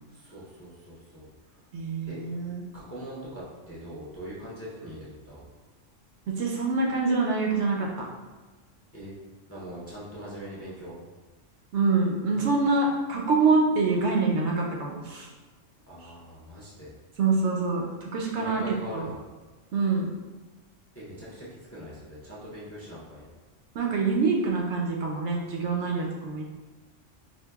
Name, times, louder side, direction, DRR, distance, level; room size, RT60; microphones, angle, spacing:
voice 1, 0.1-1.3 2.1-2.2 2.7-5.5 8.9-9.1 9.5-11.0 15.9-16.9 18.3-19.2 20.9-23.2, equal, 15° left, -7 dB, 0.5 m, -41 dB
voice 2, 1.7-2.6 6.3-8.1 11.7-15.3 17.2-18.6 18.9-19.1 19.7-20.1 23.7-26.4, right 4 dB, 70° right, -1 dB, 0.8 m, -25 dB
4.5 x 2.6 x 2.3 m, 1.3 s
omnidirectional pair, 1.3 m